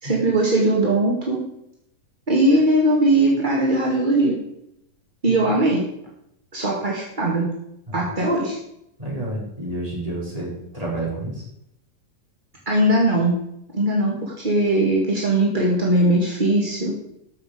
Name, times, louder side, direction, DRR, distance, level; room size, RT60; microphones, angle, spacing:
voice 1, 0.0-1.4 2.3-4.3 5.2-5.9 6.5-7.5 7.9-8.6 12.6-13.4 13.7-16.9, right 1 dB, 25° right, -4 dB, 1.1 m, -20 dB
voice 2, 9.0-11.4, right 2 dB, 10° right, -5 dB, 3.8 m, -29 dB
14.0 x 6.5 x 4.9 m, 0.78 s
omnidirectional pair, 4.1 m